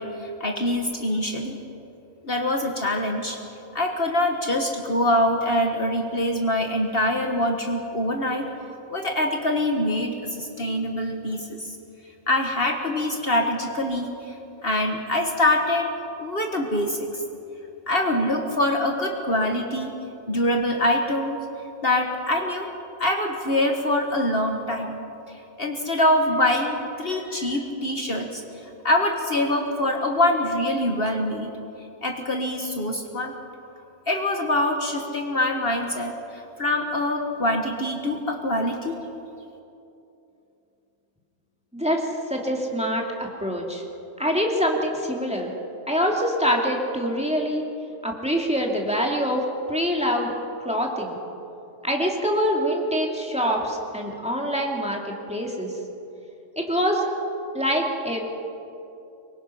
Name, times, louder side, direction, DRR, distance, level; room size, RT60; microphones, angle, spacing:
voice 1, 0.0-1.6 2.2-3.4 3.7-8.5 8.9-11.8 12.3-14.4 14.6-15.9 16.2-17.2 17.9-19.9 20.3-21.4 21.8-22.7 23.0-25.0 25.3-28.4 28.8-31.5 32.0-33.3 34.1-39.0, left 1 dB, 50° left, 2 dB, 1.7 m, -24 dB
voice 2, 41.7-43.8 44.2-45.5 45.9-47.6 48.0-50.3 50.6-51.2 51.8-55.7 56.6-57.1 57.5-58.3, equal, 5° right, 0 dB, 2.6 m, -25 dB
25.0 x 23.0 x 5.7 m, 2.8 s
omnidirectional pair, 1.3 m